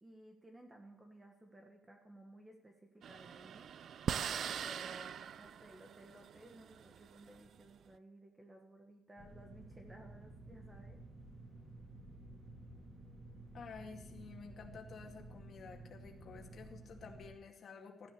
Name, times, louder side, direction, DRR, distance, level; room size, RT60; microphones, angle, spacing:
voice 1, 0.0-3.7 4.4-11.0, right 1 dB, 15° right, 3 dB, 1.4 m, -57 dB
sound 1, 3.0-7.7, right 8 dB, 55° right, 0.5 m, -42 dB
sound 2, 9.2-17.3, right 2 dB, 30° right, 6.8 m, -53 dB
voice 2, 13.5-18.1, left 5 dB, 45° left, 1 dB, 2.2 m, -52 dB
14.0 x 10.5 x 6.6 m, 0.87 s
cardioid pair, 140°, 0 cm